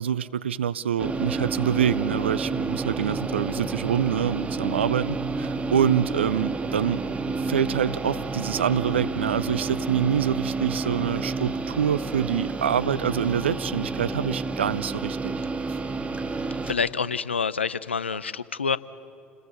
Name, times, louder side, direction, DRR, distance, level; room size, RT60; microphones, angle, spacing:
voice 1, 0.0-7.0 7.4-15.4, right 8 dB, 80° right, 16 dB, 0.5 m, -26 dB
sound 1, 1.0-16.7, right 3 dB, 20° right, 1.6 m, -30 dB
voice 2, 16.6-18.8, left 5 dB, 85° left, 18 dB, 0.5 m, -27 dB
28.5 x 20.5 x 6.6 m, 2.8 s
figure-of-eight pair, 65°, 6 cm